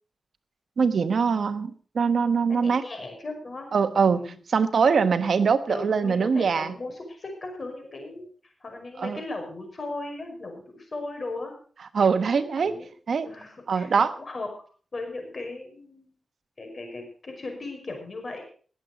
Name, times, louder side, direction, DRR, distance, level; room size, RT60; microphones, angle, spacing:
voice 1, 0.8-1.7 1.9-2.8 3.7-4.2 4.5-6.7 9.0-9.2 11.9-12.7 13.1-13.3 13.7-14.1, right 5 dB, 65° right, 11 dB, 1.1 m, -22 dB
voice 2, 2.5-3.7 4.1-4.4 5.7-8.3 8.6-11.5 12.3-12.9 13.2-14.5 14.9-16.1 16.6-18.4, left 2 dB, 45° left, 4 dB, 5.4 m, -37 dB
19.0 x 7.9 x 5.1 m, 0.42 s
wide cardioid pair, 90°, 0 cm